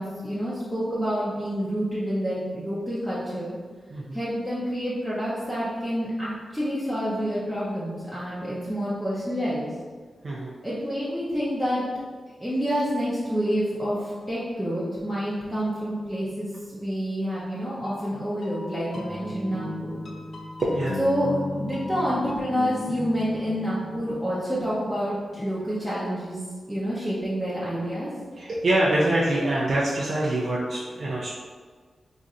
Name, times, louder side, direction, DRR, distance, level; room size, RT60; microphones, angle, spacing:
voice 1, 0.0-3.6 4.1-9.7 10.6-11.8 12.4-19.9 20.9-26.4 26.7-28.1, equal, ahead, -10 dB, 0.7 m, -28 dB
voice 2, 3.9-4.2 10.2-10.5 20.6-21.0 28.4-31.3, right 1 dB, 55° right, -6 dB, 0.5 m, -25 dB
sound 1, 17.8-25.5, left 2 dB, 55° left, 0.5 m, -37 dB
2.5 x 2.5 x 4.1 m, 1.6 s
wide cardioid pair, 105°, 0 cm